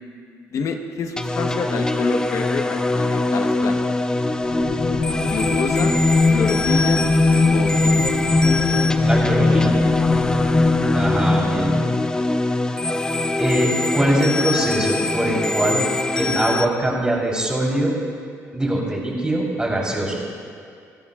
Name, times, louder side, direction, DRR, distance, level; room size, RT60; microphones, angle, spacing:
voice 1, 0.5-3.9 5.2-5.9 6.3-7.0 7.5-8.1 10.1-10.3, left 5 dB, 60° left, 4 dB, 1.1 m, -28 dB
sound 1, 1.2-16.6, left 2 dB, 10° left, 0.6 m, -23 dB
sound 2, 4.4-12.1, left 3 dB, 90° left, 2.3 m, -20 dB
voice 2, 9.1-9.7 10.9-11.8 13.4-15.8 16.1-17.9 18.5-20.2, right 1 dB, 15° right, -3 dB, 3.8 m, -22 dB
28.5 x 12.5 x 2.5 m, 2.4 s
cardioid pair, 105°, 6 cm